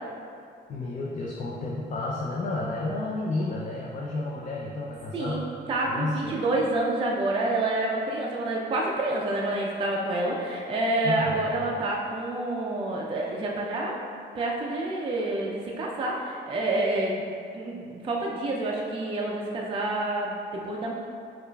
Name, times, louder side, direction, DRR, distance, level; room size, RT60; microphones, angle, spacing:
voice 1, 0.7-5.5 5.8-6.4 11.0-11.7, left 2 dB, 40° left, -3 dB, 0.4 m, -31 dB
voice 2, 5.7-14.0 14.4-17.2 17.5-20.9, right 2 dB, 25° right, -2 dB, 0.4 m, -28 dB
4.8 x 2.4 x 2.2 m, 2.4 s
cardioid pair, 90°, 20 cm